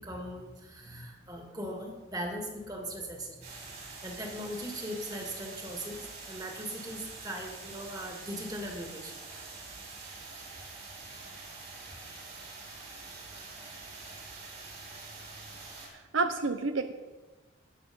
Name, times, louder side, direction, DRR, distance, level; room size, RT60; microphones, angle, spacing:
voice 1, 0.0-3.7 4.0-9.2 10.3-10.9, equal, 20° right, 1 dB, 2.2 m, -40 dB
sound 1, 3.4-15.9, right 3 dB, 55° right, 4.9 m, -45 dB
voice 2, 15.9-16.9, right 3 dB, 80° right, 9 dB, 0.7 m, -30 dB
18.5 x 6.7 x 5.4 m, 1.2 s
head